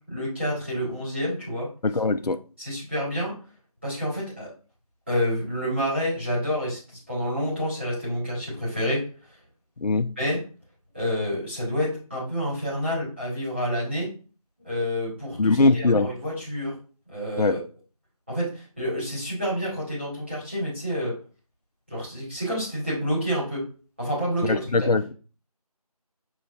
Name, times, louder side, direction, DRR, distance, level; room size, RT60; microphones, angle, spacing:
voice 1, 0.1-1.7 2.6-3.3 3.8-4.5 5.1-6.8 7.1-9.0 10.2-10.4 10.9-14.1 14.6-16.7 17.1-17.6 18.3-21.1 21.9-23.6 24.0-24.6, equal, 20° right, -9 dB, 1.9 m, -28 dB
voice 2, 1.8-2.4 9.8-10.1 15.4-16.1 17.4-17.6 24.4-25.1, left 3 dB, 80° left, 10 dB, 0.6 m, -21 dB
6.9 x 3.0 x 2.6 m, 0.37 s
figure-of-eight pair, 175°, 20 cm